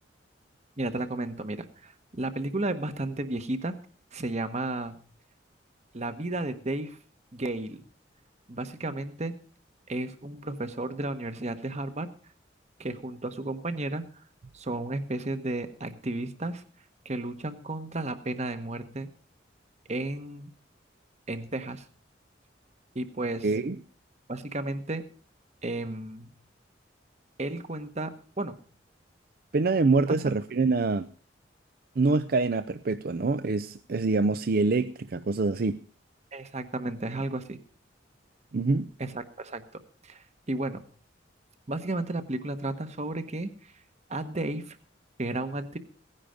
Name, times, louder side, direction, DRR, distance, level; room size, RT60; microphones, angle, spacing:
voice 1, 0.8-3.8 4.1-5.0 5.9-7.0 7.3-7.8 8.5-9.3 9.9-12.1 12.8-14.0 14.5-16.6 17.0-19.1 19.9-20.5 21.3-21.8 22.9-23.5 24.3-25.0 25.6-26.3 27.4-28.1 28.4-28.6 30.1-30.3 36.3-37.6 39.0-39.7 40.0-40.8 41.7-43.7 44.1-44.8 45.2-45.8, right 2 dB, 40° right, 1.2 m, -33 dB
voice 2, 23.4-23.8 29.5-31.1 32.0-35.8 38.5-38.9, right 3 dB, 55° right, 0.5 m, -25 dB
17.0 x 9.9 x 5.1 m
head